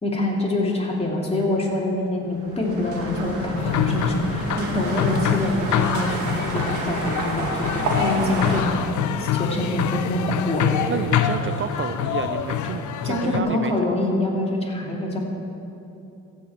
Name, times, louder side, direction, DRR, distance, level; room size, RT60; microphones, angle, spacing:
voice 1, 0.0-8.7 9.2-10.7 13.0-15.2, left 1 dB, 20° left, -3 dB, 2.8 m, -25 dB
sound 1, 2.3-8.6, right 2 dB, 75° right, 2.0 m, -29 dB
sound 2, 3.6-13.4, left 8 dB, 70° left, 0.6 m, -26 dB
voice 2, 10.9-13.7, right 8 dB, 45° right, 10 dB, 0.4 m, -30 dB
15.0 x 5.5 x 7.7 m, 2.9 s
cardioid pair, 90°, 30 cm